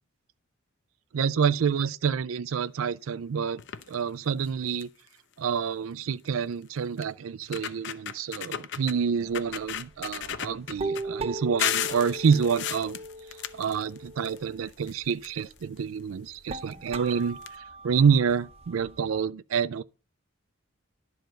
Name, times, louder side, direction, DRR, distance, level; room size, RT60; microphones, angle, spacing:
voice 1, 1.1-3.6 3.9-4.9 5.4-13.0 13.5-17.4 17.8-19.8, right 6 dB, 80° right, 0.4 m, -27 dB
sound 1, 3.6-3.9 4.4-4.5 4.8-5.1 6.3-6.4 7.0-7.1 7.4-9.0 9.3-11.0 11.6-14.4 14.7-15.8 16.7-16.8 17.1-17.2 17.4-17.5, left 10 dB, 60° left, 0.7 m, -34 dB
sound 2, 9.2-19.2, right 2 dB, 30° right, 0.6 m, -39 dB
11.5 x 4.7 x 7.7 m
head